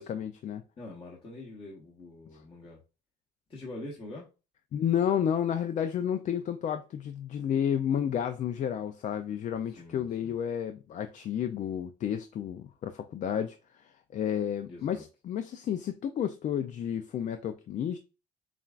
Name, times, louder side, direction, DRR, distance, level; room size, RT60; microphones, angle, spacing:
voice 1, 0.0-0.6 4.7-13.6 13.8-18.0, left 9 dB, 45° left, 0.4 m, -31 dB
voice 2, 0.8-2.8 3.5-4.3 9.7-10.4 14.7-15.0, left 2 dB, 30° left, 1.2 m, -44 dB
7.0 x 2.4 x 2.4 m
cardioid pair, 110°, 17 cm